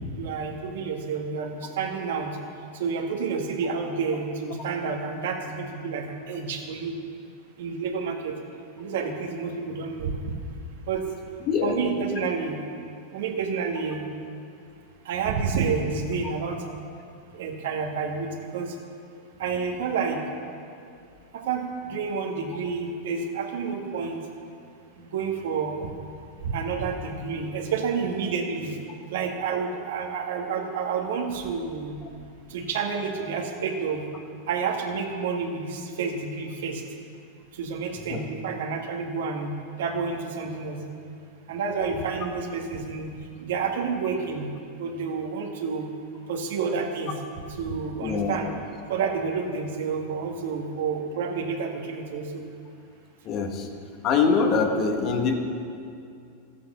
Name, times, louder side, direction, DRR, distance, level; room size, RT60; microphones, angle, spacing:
voice 1, 0.1-2.3 2.7-7.0 7.6-8.3 8.8-10.1 10.9-11.0 11.6-12.6 13.1-14.1 15.1-16.6 17.3-18.7 19.4-20.2 21.3-24.2 25.0-25.9 26.4-28.7 29.1-31.9 32.5-34.0 34.5-36.8 37.6-40.8 41.5-43.1 43.4-44.5 44.8-45.9 46.3-47.1 47.6-48.5 48.9-52.4, right 5 dB, 75° right, 2 dB, 1.9 m, -29 dB
voice 2, 48.0-48.4 53.2-53.7 54.0-55.3, left 5 dB, 45° left, 4 dB, 1.6 m, -23 dB
13.5 x 8.6 x 6.9 m, 2.5 s
hypercardioid pair, 115°, 0 cm